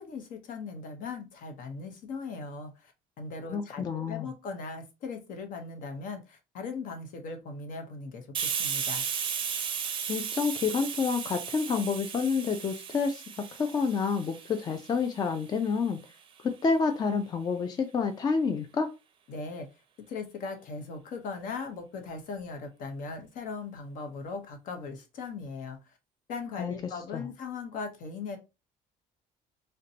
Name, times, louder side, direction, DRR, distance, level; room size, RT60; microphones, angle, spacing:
voice 1, 0.0-2.9 3.2-9.0 19.3-19.7 20.1-25.8 26.3-28.4, left 4 dB, 70° left, 0.8 m, -39 dB
voice 2, 3.5-4.3 10.1-13.2 13.6-16.0 16.4-18.9 26.6-26.7 27.1-27.2, left 5 dB, 30° left, 0.4 m, -28 dB
Hiss, 8.3-15.7, right 7 dB, 35° right, 0.5 m, -35 dB
3.9 x 2.2 x 2.7 m
cardioid pair, 135°, 15 cm